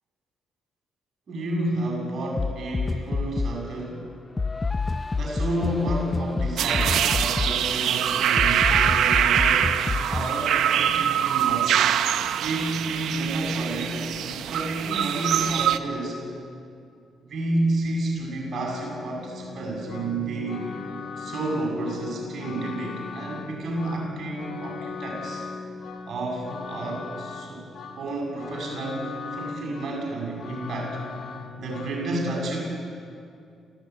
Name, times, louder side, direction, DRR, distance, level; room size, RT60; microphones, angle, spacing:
voice 1, 1.3-4.0 5.1-11.8 12.4-16.2 17.2-20.6 21.2-25.4 26.1-27.7 27.9-31.0 31.6-32.6, right 2 dB, 55° right, -1 dB, 7.3 m, -30 dB
sound 1, 2.4-3.7 4.4-10.3, left 4 dB, 25° left, 0.6 m, -28 dB
sound 2, 6.6-15.8, right 10 dB, 75° right, 1.0 m, -23 dB
sound 3, 18.5-32.0, left 4 dB, 65° left, 2.1 m, -38 dB
27.0 x 16.5 x 9.5 m, 2.5 s
cardioid pair, 90°, 0 cm